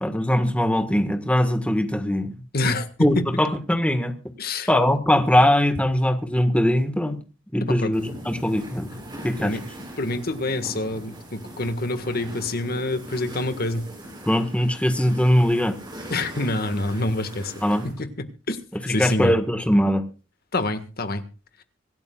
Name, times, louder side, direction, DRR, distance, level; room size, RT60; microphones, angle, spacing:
voice 1, 0.0-2.3 3.0-4.1 4.7-7.2 7.5-8.9 9.2-9.6 14.2-15.8 17.6-17.9 18.9-20.0, equal, 5° left, 1.5 m, -21 dB
voice 2, 2.5-2.9 3.2-3.3 4.4-4.7 7.6-7.9 9.4-9.6 10.0-13.9 16.1-17.5 17.8-18.6 18.9-19.3 20.5-21.3, left 2 dB, 50° left, 1.7 m, -27 dB
sound 1, 7.9-17.9, right 1 dB, 25° right, 7.2 m, -40 dB
25.5 x 12.0 x 2.4 m
head